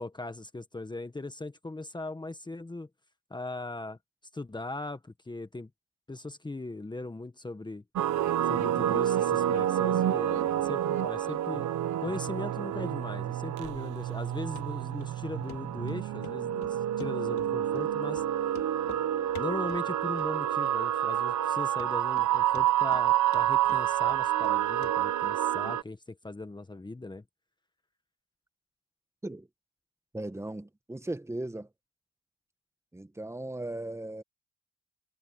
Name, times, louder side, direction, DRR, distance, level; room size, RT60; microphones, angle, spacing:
voice 1, 0.0-2.9 3.3-4.0 4.3-5.7 6.1-7.8 8.4-11.7 12.0-18.2 19.3-27.2, left 2 dB, 15° left, 1.5 m, -39 dB
sound 1, 8.0-25.8, right 11 dB, 75° right, 1.3 m, -28 dB
Run, 14.6-14.7 15.0-15.1 15.5-15.6 15.9-16.4 16.6-17.5 17.7-17.9 18.1-18.3 18.5-19.0 19.3-19.8 20.2-20.6 20.9-21.0 21.4-21.5 21.8-22.3 22.5-23.0 23.3-24.6 24.8-24.9 25.2-25.3, left 10 dB, 70° left, 5.2 m, -47 dB
voice 2, 30.1-31.7 32.9-34.2, right 1 dB, 10° right, 1.3 m, -37 dB
cardioid pair, 90°, 30 cm